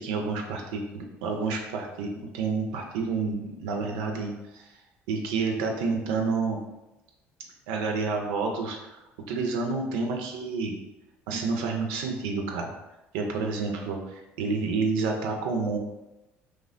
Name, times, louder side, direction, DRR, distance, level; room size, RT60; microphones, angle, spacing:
voice 1, 0.0-4.7 5.1-6.6 7.7-9.0 9.3-10.8 11.3-12.7 13.1-15.8, right 4 dB, 80° right, 2 dB, 0.4 m, -29 dB
3.2 x 2.2 x 2.4 m, 0.99 s
hypercardioid pair, 60°, 6 cm